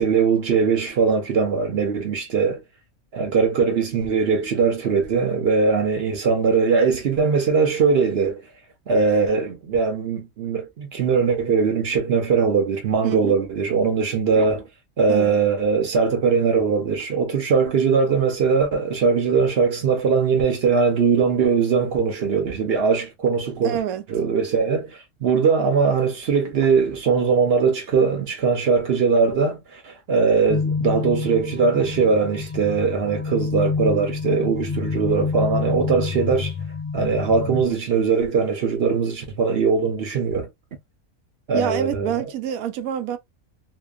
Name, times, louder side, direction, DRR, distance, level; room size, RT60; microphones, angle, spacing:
voice 1, 0.0-2.6 3.1-8.4 8.9-14.6 15.0-23.8 24.1-36.5 36.9-40.5 41.5-42.1, right 5 dB, 55° right, 0.9 m, -21 dB
voice 2, 13.0-13.4 15.1-15.4 23.6-24.1 41.5-43.2, right 9 dB, 90° right, 1.0 m, -26 dB
sound 1, 30.5-37.6, left 5 dB, 55° left, 0.3 m, -27 dB
2.7 x 2.2 x 2.2 m
omnidirectional pair, 1.5 m